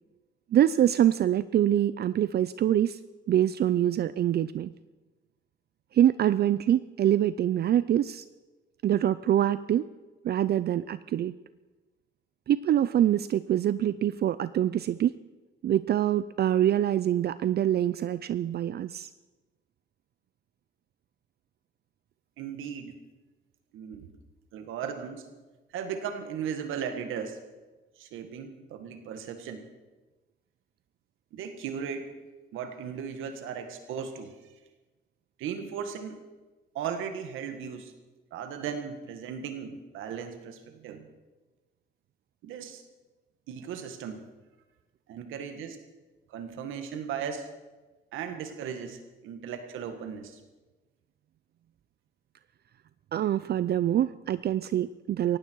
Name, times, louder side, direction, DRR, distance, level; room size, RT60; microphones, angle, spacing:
voice 1, 0.5-3.0 3.3-4.7 5.9-8.2 8.8-9.8 10.2-11.3 12.5-15.1 15.6-19.1 53.1-55.4, right 11 dB, 55° right, 15 dB, 0.5 m, -25 dB
voice 2, 22.4-23.0 23.7-24.1 24.5-25.3 25.7-27.4 28.0-29.7 31.3-32.1 32.5-34.3 35.4-36.2 36.7-37.9 38.3-41.1 42.4-42.8 43.5-44.3 45.1-45.8 46.3-47.5 48.1-50.4, right 7 dB, 90° right, 7 dB, 1.9 m, -37 dB
18.5 x 15.5 x 4.7 m, 1.2 s
cardioid pair, 90°, 20 cm